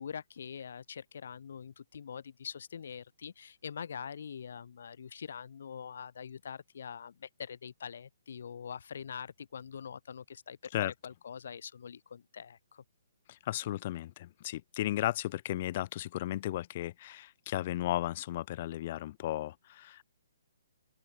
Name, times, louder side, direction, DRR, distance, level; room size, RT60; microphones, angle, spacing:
voice 1, 0.0-12.8, left 7 dB, 65° left, 1.5 m, -44 dB
voice 2, 13.3-20.0, left 14 dB, 40° left, 0.6 m, -35 dB
open air
hypercardioid pair, 155°, 0 cm